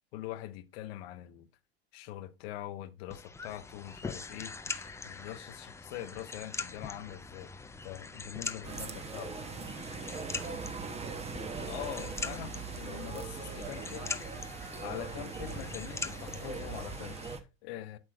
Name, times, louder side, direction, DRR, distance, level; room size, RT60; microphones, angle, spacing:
voice 1, 0.1-1.5 1.9-7.5 7.8-9.3 11.6-14.3 14.8-18.0, left 13 dB, 70° left, 0.8 m, -43 dB
sound 1, 3.1-17.4, left 4 dB, 10° left, 0.5 m, -43 dB
sound 2, 8.6-17.4, right 5 dB, 20° right, 0.9 m, -40 dB
voice 2, 8.7-11.8, right 8 dB, 70° right, 2.1 m, -56 dB
8.7 x 6.1 x 2.4 m
hypercardioid pair, 100°, 32 cm